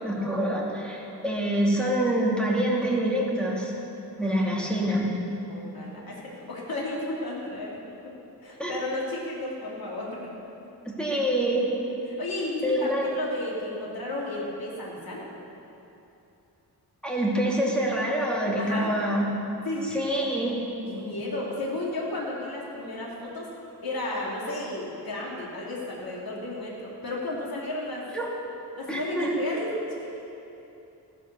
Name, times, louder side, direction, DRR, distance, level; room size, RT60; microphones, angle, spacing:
voice 1, 0.0-3.7 4.2-5.1 8.6-8.8 10.8-11.7 12.6-13.1 17.0-19.3 19.9-20.6 28.1-28.3 28.9-29.4, right 1 dB, ahead, -4 dB, 2.5 m, -26 dB
voice 2, 4.2-4.9 5.5-8.1 8.4-10.3 11.1-11.2 11.9-15.2 18.6-18.9 19.6-20.0 20.9-23.5 23.8-28.1 28.7-29.7 30.0-30.3, left 2 dB, 60° left, -4 dB, 2.8 m, -33 dB
14.5 x 11.5 x 6.8 m, 2.9 s
wide cardioid pair, 155°, 40 cm